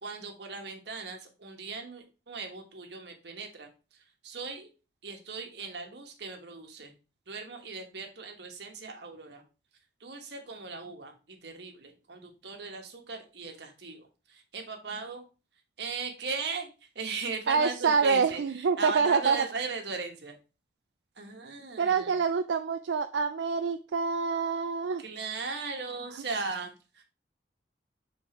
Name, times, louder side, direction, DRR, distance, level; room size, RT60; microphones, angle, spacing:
voice 1, 0.0-4.7 5.0-6.9 7.3-9.4 10.0-15.2 15.8-16.7 16.9-20.4 21.2-22.2 25.0-27.0, right 4 dB, 65° right, 3 dB, 1.3 m, -38 dB
voice 2, 17.5-19.4 21.8-25.0, right 5 dB, 85° right, 8 dB, 0.4 m, -26 dB
5.8 x 4.1 x 4.4 m, 0.32 s
head